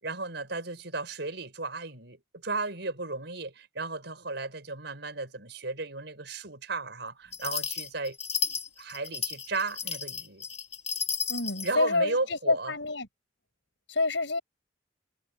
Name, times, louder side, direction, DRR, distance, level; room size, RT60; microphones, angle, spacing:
voice 1, 0.0-8.2 8.8-10.4 11.6-12.7, right 3 dB, 65° right, 6.3 m, -34 dB
sound 1, 7.3-11.7, left 6 dB, 35° left, 2.1 m, -33 dB
voice 2, 11.3-13.1 13.9-14.4, left 3 dB, 80° left, 5.9 m, -28 dB
head